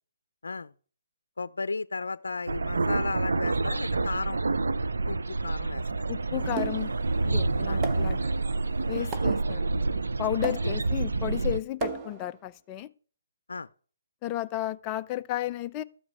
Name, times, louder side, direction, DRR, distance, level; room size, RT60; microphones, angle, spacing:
voice 1, 1.4-4.4 5.0-5.8 7.7-7.8 9.0-9.1 10.6-10.8 13.5-13.7, left 3 dB, 90° left, 0.5 m, -34 dB
sound 1, 2.5-11.6, right 3 dB, 90° right, 0.7 m, -28 dB
voice 2, 6.1-6.9 7.2-8.2 8.9-9.6 10.2-12.9 14.2-15.8, left 14 dB, 20° left, 0.5 m, -33 dB
Motorcycle, 6.4-11.4, right 3 dB, 70° right, 3.2 m, -48 dB
sound 2, 6.6-7.0 7.8-8.2 9.1-9.5 10.4-10.9 11.8-12.3, right 4 dB, 20° right, 0.9 m, -35 dB
13.0 x 5.2 x 8.4 m
hypercardioid pair, 155°, 0 cm